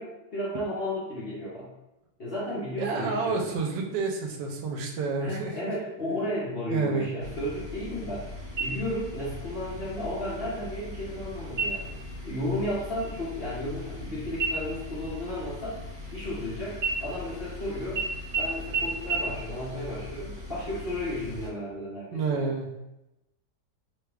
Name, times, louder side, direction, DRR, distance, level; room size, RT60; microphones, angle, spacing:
voice 1, 0.0-1.7 2.2-3.6 5.2-8.3 8.6-12.0 12.2-15.8 16.1-18.0 18.4-22.5, left 1 dB, 50° left, -9 dB, 0.7 m, -33 dB
voice 2, 2.8-5.5 6.0-6.2 6.7-7.1 22.1-22.7, right 4 dB, 80° right, 1 dB, 1.2 m, -29 dB
sound 1, 7.2-21.5, left 2 dB, 30° right, 1.1 m, -41 dB
sound 2, 8.6-9.2 9.6-9.7 10.3-10.8 11.5-12.0 12.4-12.7 13.0-14.1 14.4-16.4 16.8-17.6 18.0-18.1 18.3-18.4 18.7-18.8 19.1-19.2, right 5 dB, 65° right, 1.2 m, -32 dB
3.1 x 2.3 x 3.3 m, 0.94 s
omnidirectional pair, 1.9 m